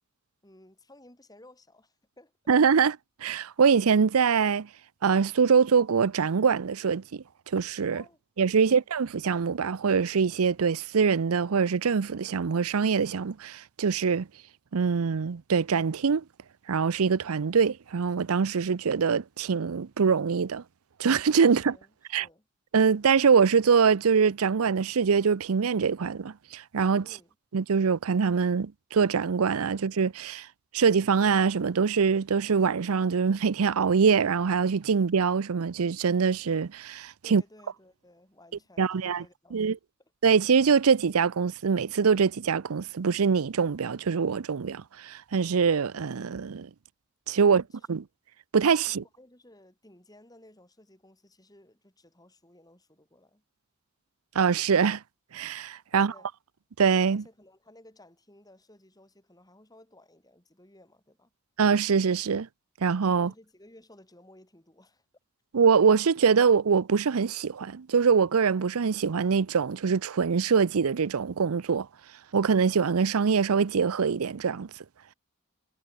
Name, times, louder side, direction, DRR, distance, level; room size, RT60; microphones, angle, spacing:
voice 1, 0.4-2.3 7.9-8.2 8.6-8.9 21.5-22.5 27.0-27.3 37.2-39.7 47.4-47.9 48.9-53.4 55.9-56.3 57.1-61.3 63.2-65.0, left 1 dB, 15° left, 4.6 m, -56 dB
voice 2, 2.5-4.7 5.0-8.0 8.4-14.3 14.7-16.2 16.7-20.6 21.0-21.7 22.1-22.3 22.7-27.0 27.5-30.5 30.7-37.4 38.8-39.2 39.5-39.8 40.2-46.7 47.3-47.6 47.9-48.0 48.5-49.0 54.3-55.0 55.3-56.1 56.8-57.2 61.6-62.5 62.8-63.3 65.5-71.9 72.3-74.7, right 6 dB, 80° right, 0.6 m, -24 dB
head